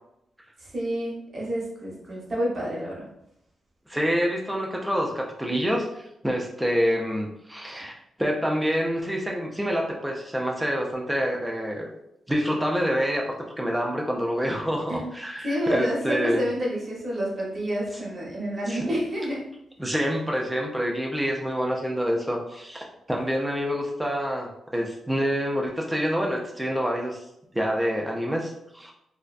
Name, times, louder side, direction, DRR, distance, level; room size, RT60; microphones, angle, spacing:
voice 1, 0.7-3.1 14.9-15.1 15.4-19.4, equal, 40° right, -4 dB, 0.9 m, -28 dB
voice 2, 3.9-11.9 12.3-16.4 17.9-18.0 18.7-18.9 19.8-27.2 27.5-28.9, equal, 5° right, 0 dB, 0.4 m, -27 dB
2.4 x 2.2 x 2.4 m, 0.80 s
wide cardioid pair, 130°, 0 cm